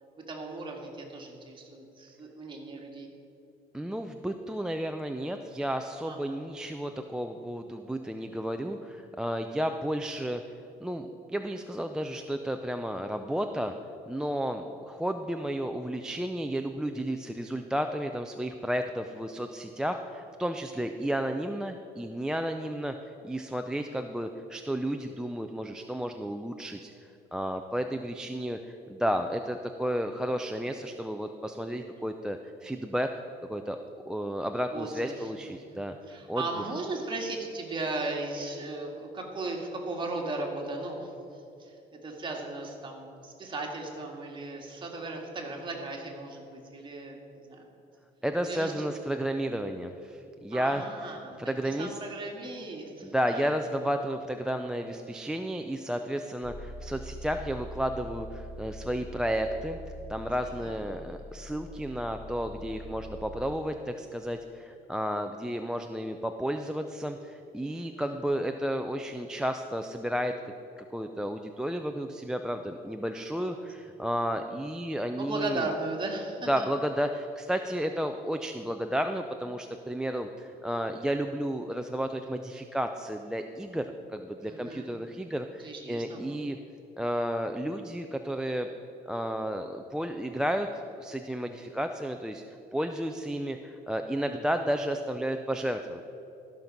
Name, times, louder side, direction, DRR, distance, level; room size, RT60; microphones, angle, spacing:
voice 1, 0.3-3.1 6.0-6.4 34.7-41.1 41.6-41.7 42.0-47.7 48.4-49.0 50.5-51.4 51.6-53.5 60.4-61.1 67.7-68.2 73.3-73.6 75.2-76.7 84.4-84.9 85.6-86.4 94.5-94.7, right 2 dB, 30° right, 0 dB, 1.9 m, -37 dB
voice 2, 3.7-10.4 10.8-13.7 14.1-26.9 27.3-33.1 33.5-33.8 34.1-36.0 36.3-36.4 48.2-50.9 51.4-52.0 53.0-59.8 60.1-75.7 76.5-86.6 87.0-88.7 89.1-90.7 91.0-92.4 92.7-96.0, equal, 5° right, 6 dB, 0.4 m, -32 dB
sound 1, 56.4-63.6, equal, 60° right, 1.2 m, -43 dB
13.5 x 5.9 x 5.3 m, 2.8 s
cardioid pair, 110°, 17 cm